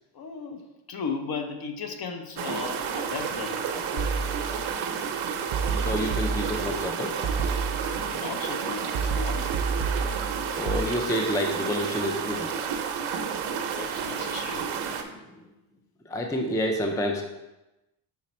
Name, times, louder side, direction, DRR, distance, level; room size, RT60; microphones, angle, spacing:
voice 1, 0.1-4.1 7.9-9.5 13.7-14.7, left 5 dB, 50° left, 5 dB, 0.8 m, -36 dB
sound 1, 2.4-15.0, right 7 dB, 85° right, 0.9 m, -31 dB
sound 2, 4.0-4.9 5.5-6.9 7.2-8.3 8.9-10.8, right 5 dB, 50° right, 0.5 m, -30 dB
voice 2, 5.8-7.1 10.6-12.5 15.0-15.5 16.1-17.2, left 1 dB, 5° left, 3 dB, 0.4 m, -29 dB
6.4 x 4.1 x 4.2 m, 1.0 s
cardioid pair, 120°, 47 cm